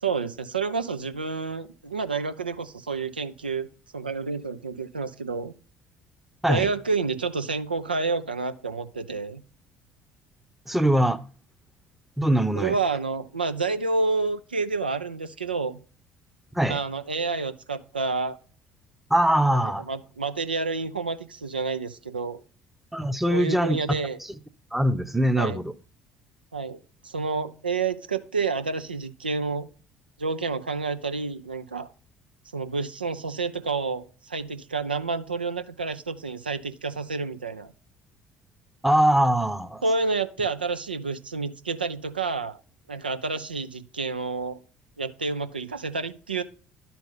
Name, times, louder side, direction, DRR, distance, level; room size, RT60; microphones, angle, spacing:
voice 1, 0.0-3.7 3.9-5.5 6.5-9.4 12.6-15.8 16.7-18.4 19.5-19.6 19.9-22.4 23.3-24.2 25.4-25.6 26.5-26.8 27.0-29.7 30.2-31.9 32.5-37.7 39.8-42.6 42.9-44.6 45.0-46.4, right 4 dB, 90° right, 0.4 m, -29 dB
voice 2, 10.7-11.2 12.2-12.8 16.5-16.8 19.1-19.9 22.9-24.3 24.7-25.7 38.8-39.8, right 1 dB, 5° right, 0.7 m, -22 dB
10.5 x 4.4 x 5.4 m
figure-of-eight pair, 55°, 5 cm